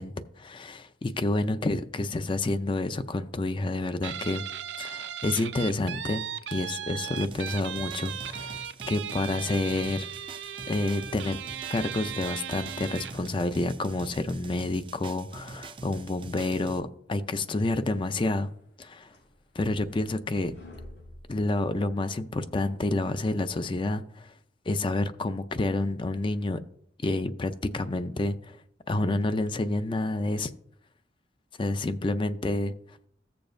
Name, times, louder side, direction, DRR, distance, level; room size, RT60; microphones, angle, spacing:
voice 1, 0.0-4.4 4.8-10.1 10.7-11.4 11.7-18.5 18.8-19.1 19.5-20.5 21.3-24.3 24.7-26.6 27.0-28.6 28.9-30.5 31.6-32.7, left 2 dB, 30° left, 0.4 m, -29 dB
Guitar, 4.0-13.3, right 9 dB, 90° right, 0.5 m, -37 dB
sound 1, 7.1-16.8, right 3 dB, 30° right, 0.5 m, -44 dB
sound 2, 18.6-22.2, left 1 dB, 75° left, 4.5 m, -49 dB
15.0 x 6.9 x 2.6 m
head